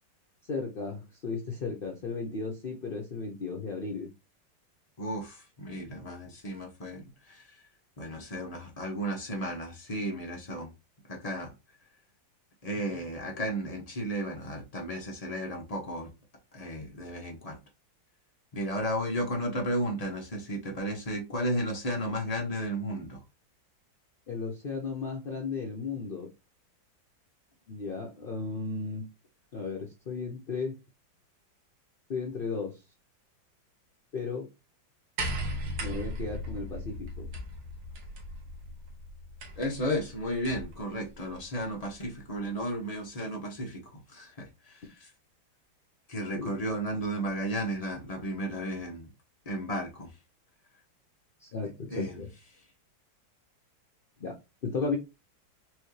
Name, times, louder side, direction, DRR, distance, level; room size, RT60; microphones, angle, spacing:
voice 1, 0.5-4.1 24.3-26.3 27.7-29.0 29.5-30.8 32.1-32.7 34.1-34.5 35.8-37.3 46.3-46.5 51.4-52.3 54.2-54.3 54.6-55.0, left 4 dB, 90° left, 0.4 m, -35 dB
voice 2, 5.0-7.4 8.0-10.7 11.1-11.5 12.6-16.1 16.5-17.6 18.5-23.2 39.6-45.1 46.1-49.1 49.5-50.1 51.9-52.2, equal, 35° left, 0.6 m, -34 dB
sound 1, 35.2-40.8 41.9-42.0, equal, 85° right, 1.9 m, -37 dB
4.7 x 2.7 x 3.1 m
omnidirectional pair, 2.1 m